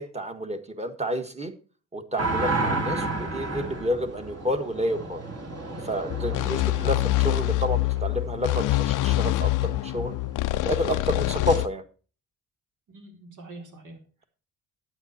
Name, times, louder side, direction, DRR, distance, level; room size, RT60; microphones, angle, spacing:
voice 1, 0.0-1.5 1.9-5.2 5.8-10.1 10.6-11.8, equal, 20° right, 7 dB, 1.6 m, -29 dB
sound 1, 2.2-8.0 11.5-11.6, right 3 dB, 50° right, 3.5 m, -31 dB
sound 2, 6.1-11.7, left 17 dB, 80° left, 0.5 m, -25 dB
voice 2, 6.3-7.2 12.9-14.2, right 3 dB, 75° right, 3 dB, 4.2 m, -45 dB
11.5 x 9.3 x 4.3 m, 0.37 s
cardioid pair, 125°, 31 cm